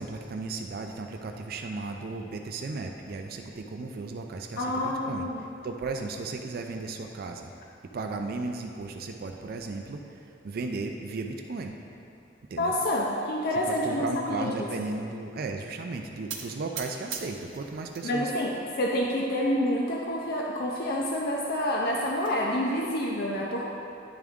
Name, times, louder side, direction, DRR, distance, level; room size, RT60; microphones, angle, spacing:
voice 1, 0.0-7.5 7.9-11.7 12.5-12.8 13.5-18.3, right 3 dB, 55° right, 4 dB, 0.4 m, -35 dB
voice 2, 4.6-5.4 12.6-14.7 18.0-23.7, left 1 dB, 55° left, -2 dB, 0.5 m, -28 dB
sound 1, 16.3-18.1 18.5-19.1 19.7-19.8 20.0-20.1 20.5-20.6 21.7-22.4, right 6 dB, 85° right, 0.7 m, -41 dB
10.5 x 3.6 x 3.5 m, 2.6 s
head